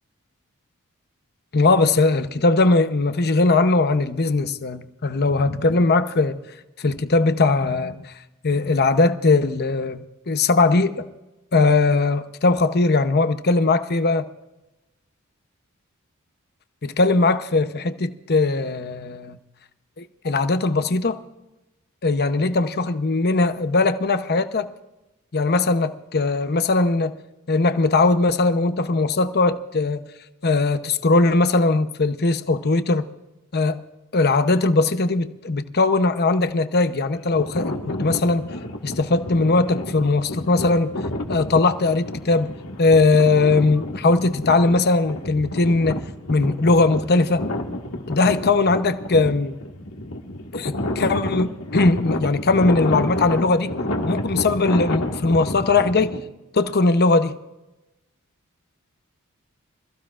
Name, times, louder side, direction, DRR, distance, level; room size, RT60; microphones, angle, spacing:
voice 1, 1.5-6.4 6.8-8.1 8.4-11.1 11.5-14.3 16.8-19.4 20.0-21.2 22.0-24.7 25.3-27.2 27.5-30.0 30.4-33.1 33.5-33.8 34.1-38.5 38.8-40.9 41.3-46.0 46.3-47.5 48.1-49.6 50.5-53.7 54.0-56.2 56.5-57.3, left 3 dB, 50° left, 0.8 m, -20 dB
sound 1, 37.2-56.2, left 1 dB, 85° left, 1.7 m, -30 dB
26.0 x 15.0 x 2.5 m
head